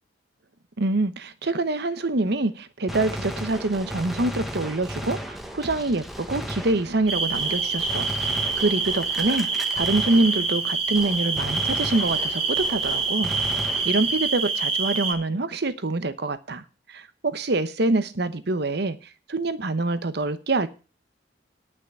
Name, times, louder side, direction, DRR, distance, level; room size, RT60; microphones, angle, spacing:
voice 1, 0.8-9.5 9.7-13.3 13.8-16.6 16.9-19.0 19.3-20.7, right 2 dB, 65° right, 1.0 m, -25 dB
Gunshot gunfire, 2.9-10.7 10.9-14.3, equal, ahead, 1.1 m, -35 dB
sound 1, 7.1-15.1, right 4 dB, 35° right, 2.2 m, -26 dB
10.5 x 6.0 x 8.2 m
head